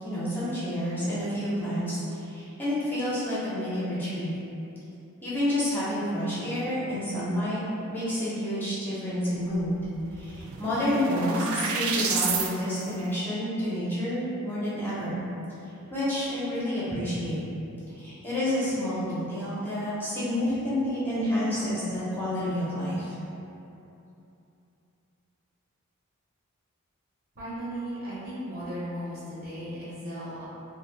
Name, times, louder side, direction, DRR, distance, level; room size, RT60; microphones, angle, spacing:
voice 1, 0.0-4.3 5.2-7.6 7.9-9.8 10.1-15.2 15.9-17.4 17.9-23.1, left 1 dB, 10° left, -11 dB, 0.7 m, -29 dB
sound 1, 9.6-9.7 10.0-12.5, right 5 dB, 65° right, 0.3 m, -30 dB
voice 2, 27.3-30.5, equal, 45° right, -9 dB, 0.8 m, -36 dB
2.6 x 2.5 x 3.2 m, 2.8 s
head